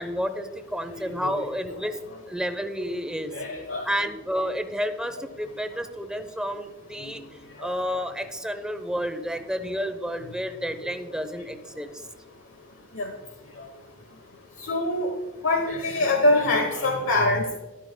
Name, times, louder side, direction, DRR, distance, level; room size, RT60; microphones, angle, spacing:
voice 1, 0.0-2.0 2.3-3.3 3.8-7.2 7.6-12.0, equal, 5° right, 9 dB, 0.7 m, -30 dB
voice 2, 3.3-3.9 7.0-7.1 13.0-13.1 14.6-15.1 15.4-17.6, left 2 dB, 90° left, 4 dB, 1.1 m, -24 dB
13.0 x 11.5 x 2.2 m, 1.2 s
head